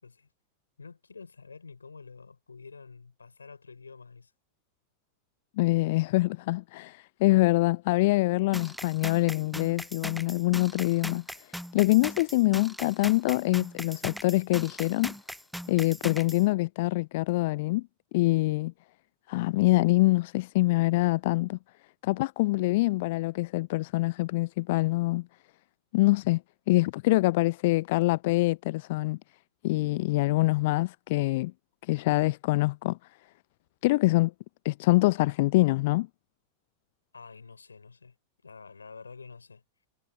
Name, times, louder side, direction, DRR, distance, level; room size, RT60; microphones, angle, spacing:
voice 1, 0.8-4.3 37.1-38.2 38.4-39.6, left 4 dB, 75° left, 6.0 m, -48 dB
voice 2, 5.6-15.1 15.7-17.9 18.1-18.7 19.3-21.6 22.0-25.3 25.9-26.4 26.7-29.2 29.6-31.5 31.8-33.0 33.8-34.3 34.6-36.1, left 20 dB, 50° left, 0.5 m, -25 dB
sound 1, 8.5-16.4, equal, ahead, 0.4 m, -40 dB
figure-of-eight pair, 90°, 0 cm